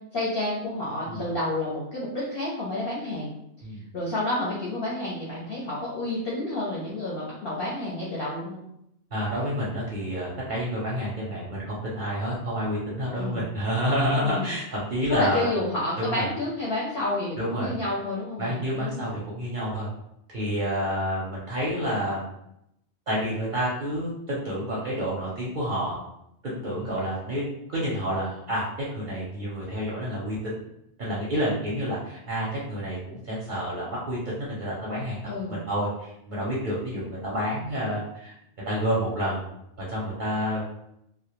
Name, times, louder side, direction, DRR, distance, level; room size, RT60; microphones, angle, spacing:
voice 1, 0.1-3.3 3.9-8.6 13.2-13.4 14.2-14.5 15.1-19.2 35.3-35.6, left 1 dB, 60° left, -6 dB, 0.7 m, -30 dB
voice 2, 9.1-15.5 16.0-16.3 17.4-17.7 18.4-19.9 20.3-22.3 23.1-26.0 26.4-27.4 27.7-28.7 28.9-30.6 31.0-38.3 38.6-39.4 39.8-40.6, equal, 55° right, -6 dB, 0.6 m, -29 dB
2.1 x 2.1 x 2.8 m, 0.79 s
omnidirectional pair, 1.2 m